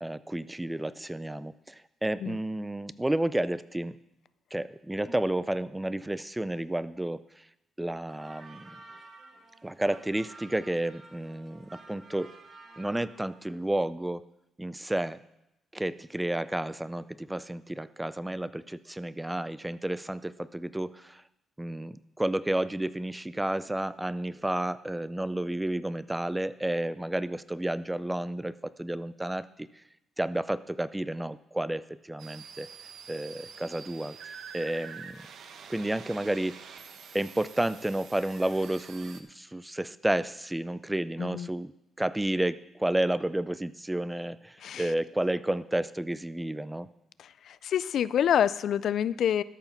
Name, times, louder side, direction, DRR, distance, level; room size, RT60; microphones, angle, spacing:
voice 1, 0.0-4.0 4.5-7.2 7.8-8.8 9.6-12.3 12.8-14.2 14.6-15.2 15.7-21.2 21.6-29.7 30.2-32.7 33.1-34.2 34.5-35.2 35.7-36.6 37.1-41.7 42.0-46.9, right 1 dB, 10° right, 16 dB, 0.4 m, -31 dB
sound 1, 8.1-13.4, right 2 dB, 45° right, 1.5 m, -51 dB
sound 2, 32.2-39.2, right 6 dB, 65° right, 0.8 m, -47 dB
voice 2, 44.6-44.9 47.2-49.4, left 9 dB, 65° left, 17 dB, 0.3 m, -27 dB
13.0 x 5.7 x 5.8 m, 0.88 s
cardioid pair, 90°, 0 cm